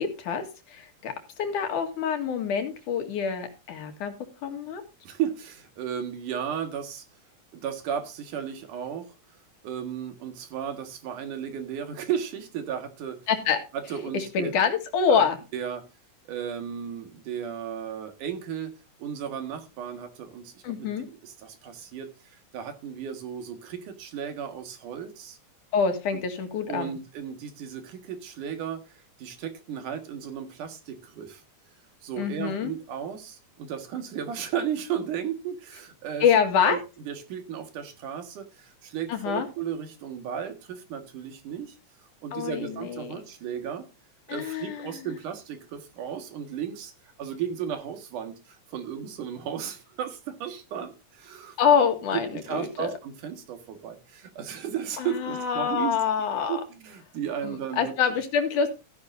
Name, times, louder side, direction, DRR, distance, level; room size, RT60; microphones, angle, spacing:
voice 1, 0.0-4.1 4.4-4.8 13.3-13.6 14.1-15.4 20.6-21.1 25.7-27.0 32.2-32.7 36.2-36.8 39.1-39.5 42.3-43.2 44.3-45.0 51.6-52.9 55.0-56.6 57.4-58.7, left 6 dB, 85° left, 6 dB, 3.4 m, -26 dB
voice 2, 5.0-7.0 7.5-9.2 9.6-13.2 13.7-14.5 15.5-15.8 16.3-18.7 19.0-20.9 21.2-25.4 26.7-31.4 32.0-36.3 36.7-36.8 37.1-41.8 42.2-43.9 44.3-46.9 47.2-51.6 52.1-56.0 56.5-57.9, right 8 dB, 90° right, 6 dB, 3.3 m, -34 dB
14.5 x 10.5 x 2.6 m, 0.29 s
omnidirectional pair, 3.5 m